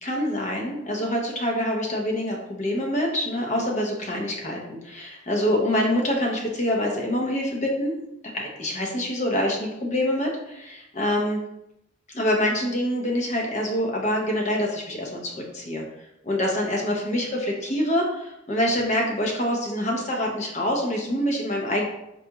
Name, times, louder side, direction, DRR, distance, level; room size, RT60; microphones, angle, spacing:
voice 1, 0.0-7.9 8.3-11.4 12.1-15.8 16.2-21.9, left 1 dB, 40° left, -1 dB, 0.6 m, -25 dB
4.0 x 2.3 x 2.9 m, 0.85 s
head